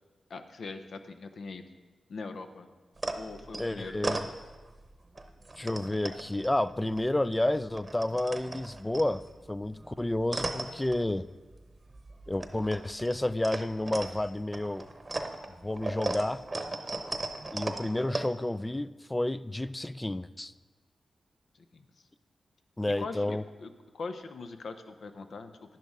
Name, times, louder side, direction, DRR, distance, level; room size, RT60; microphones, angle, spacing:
voice 1, 0.3-1.6 2.1-2.7 3.2-4.0 21.7-21.9 22.9-23.3 23.6-23.7 23.9-25.5, left 4 dB, 75° left, 8 dB, 0.7 m, -41 dB
sound 1, 3.0-4.8 5.2-7.4 7.6-11.6 11.9-18.2, right 2 dB, 35° right, 0.9 m, -37 dB
voice 2, 3.6-4.2 5.6-9.2 9.5-11.3 12.3-14.9 15.6-16.4 17.5-20.5 22.8-23.4, left 1 dB, 15° left, 16 dB, 0.3 m, -30 dB
11.0 x 10.5 x 3.6 m, 1.3 s
cardioid pair, 70°, 0 cm